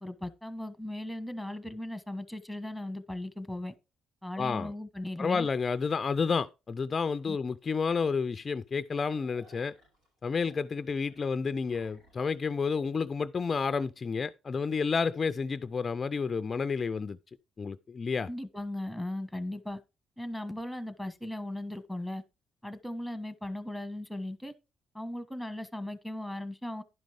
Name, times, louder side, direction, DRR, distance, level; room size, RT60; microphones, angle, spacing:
voice 1, 0.0-3.7 4.2-5.5 7.3-7.4 18.3-19.8 20.2-22.2 22.6-24.5 24.9-26.8, left 1 dB, ahead, 1.3 m, -37 dB
voice 2, 4.4-4.7 5.2-9.7 10.2-17.2 17.6-18.3, left 5 dB, 40° left, 0.4 m, -30 dB
sound 1, 7.1-7.2 7.6-7.7 8.1-8.2 8.6-12.3, right 1 dB, 85° right, 7.2 m, -62 dB
11.0 x 5.2 x 4.9 m
cardioid pair, 90°, 0 cm